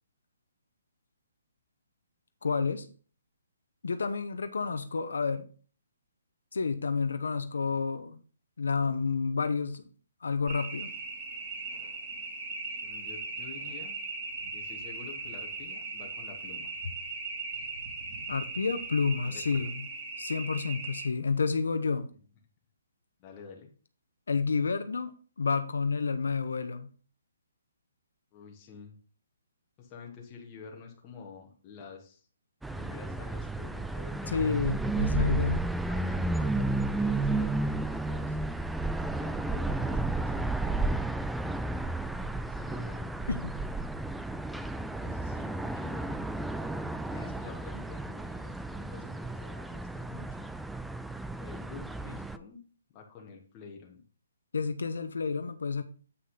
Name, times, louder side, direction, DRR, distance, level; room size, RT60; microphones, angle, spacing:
voice 1, 2.4-2.9 3.8-5.5 6.5-8.2 8.6-9.8 10.2-10.9 18.3-19.7 20.2-22.1 24.3-26.9 34.3-35.7 43.3-43.5 54.5-55.8, left 5 dB, 85° left, 0.9 m, -30 dB
sound 1, 10.5-21.1, right 3 dB, 30° right, 3.2 m, -39 dB
voice 2, 12.8-14.0 14.5-16.7 19.2-19.7 23.2-23.7 28.3-29.0 29.8-32.3 32.7-34.5 35.9-38.5 39.1-41.4 42.5-43.1 44.8-46.2 47.1-50.5 51.4-52.6 52.9-54.0, left 5 dB, 25° left, 1.5 m, -49 dB
sound 2, 32.6-52.4, right 2 dB, 5° right, 0.3 m, -32 dB
8.3 x 5.5 x 3.9 m
hypercardioid pair, 155°, 0 cm